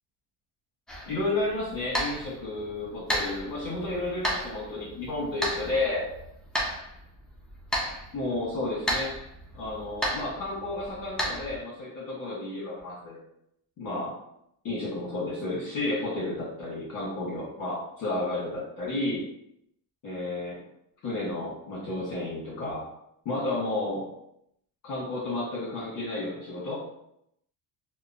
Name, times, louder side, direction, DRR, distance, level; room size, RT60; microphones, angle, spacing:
sound 1, 0.9-11.6, equal, ahead, 0.5 m, -34 dB
voice 1, 1.1-6.0 8.1-9.1 9.5-13.2 13.8-14.1 14.6-19.2 20.0-20.6 21.0-22.9 23.2-24.1 24.8-26.8, left 2 dB, 45° left, -7 dB, 1.2 m, -32 dB
2.8 x 2.1 x 2.5 m, 0.77 s
cardioid pair, 120°, 44 cm